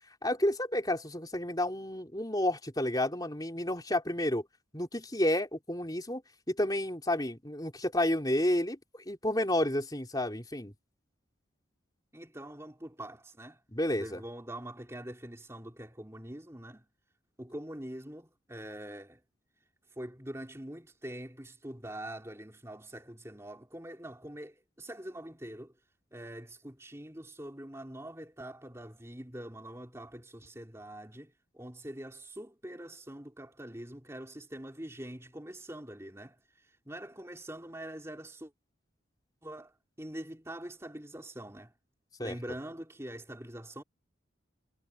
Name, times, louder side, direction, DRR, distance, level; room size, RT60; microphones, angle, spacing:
voice 1, 0.2-4.4 4.7-6.2 6.5-10.7 13.7-14.2 42.2-42.3, left 1 dB, 20° left, 4.1 m, -30 dB
voice 2, 12.1-13.6 13.9-16.9 17.4-19.2 20.0-25.7 26.1-38.5 39.4-41.7 42.2-43.8, right 1 dB, 15° right, 3.1 m, -44 dB
head